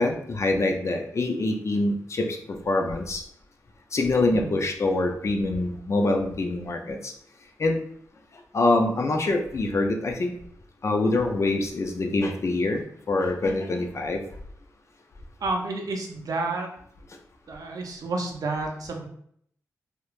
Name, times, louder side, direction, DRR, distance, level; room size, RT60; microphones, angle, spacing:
voice 1, 0.0-3.2 3.9-7.1 7.6-7.8 8.5-10.3 10.8-12.8 13.1-14.2, left 2 dB, 50° left, 3 dB, 0.5 m, -25 dB
voice 2, 15.4-16.7 17.5-19.1, right 3 dB, 70° right, 2 dB, 0.6 m, -30 dB
2.9 x 2.2 x 2.4 m, 0.66 s
cardioid pair, 50°, 6 cm